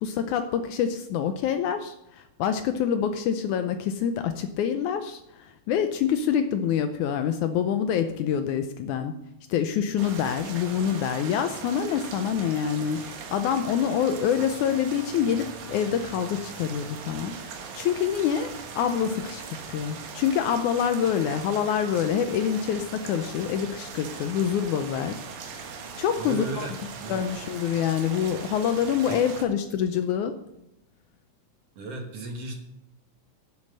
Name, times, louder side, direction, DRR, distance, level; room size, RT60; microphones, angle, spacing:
voice 1, 0.0-9.1 9.5-25.7 26.0-26.7 27.1-30.3, left 8 dB, 75° left, 8 dB, 1.9 m, -26 dB
sound 1, 10.0-29.4, right 6 dB, 80° right, 3.1 m, -40 dB
voice 2, 26.2-27.3 29.1-29.2 31.8-32.6, right 2 dB, 55° right, 3 dB, 2.1 m, -35 dB
11.0 x 7.4 x 6.6 m, 0.87 s
omnidirectional pair, 3.9 m